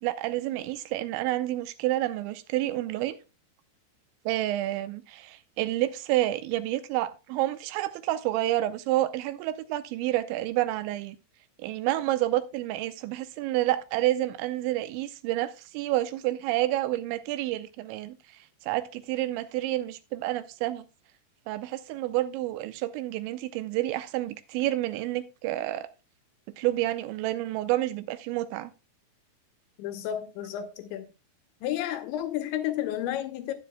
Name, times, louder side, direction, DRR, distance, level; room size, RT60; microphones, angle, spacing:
voice 1, 0.0-3.2 4.3-11.2 11.6-18.2 18.6-20.9 21.5-25.9 26.6-28.7, right 15 dB, 90° right, 3.0 m, -29 dB
voice 2, 29.8-31.1 31.6-33.5, left 11 dB, 80° left, 3.1 m, -31 dB
12.0 x 9.9 x 2.2 m
omnidirectional pair, 5.3 m